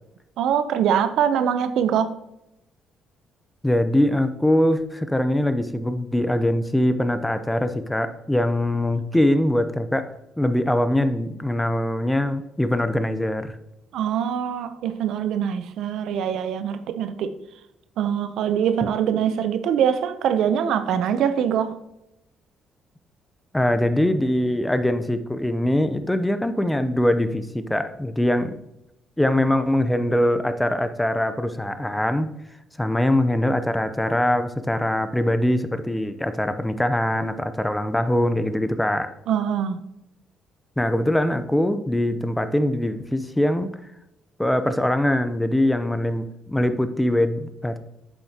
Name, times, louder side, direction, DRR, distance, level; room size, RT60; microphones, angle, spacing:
voice 1, 0.4-2.1 13.9-17.3 18.0-21.8 39.3-39.8, right 8 dB, 80° right, 0.6 m, -23 dB
voice 2, 3.6-13.6 18.8-18.9 23.5-28.6 29.2-32.3 32.8-39.1 40.8-43.7 44.4-47.8, left 1 dB, 10° left, 0.6 m, -22 dB
7.8 x 7.3 x 2.8 m
cardioid pair, 105°, 0 cm